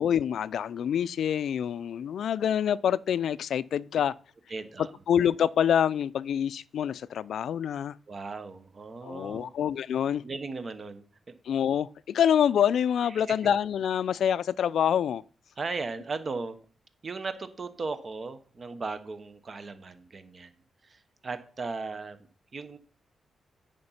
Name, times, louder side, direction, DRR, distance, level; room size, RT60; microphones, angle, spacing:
voice 1, 0.0-4.1 5.1-7.9 9.0-10.2 11.5-15.2, left 9 dB, 75° left, 0.4 m, -26 dB
voice 2, 4.5-4.9 8.1-9.5 10.2-11.3 13.1-13.3 15.6-16.6 17.0-20.5 20.8-22.2 22.5-22.8, right 4 dB, 35° right, 0.9 m, -37 dB
9.6 x 5.1 x 5.6 m
wide cardioid pair, 140°, 0 cm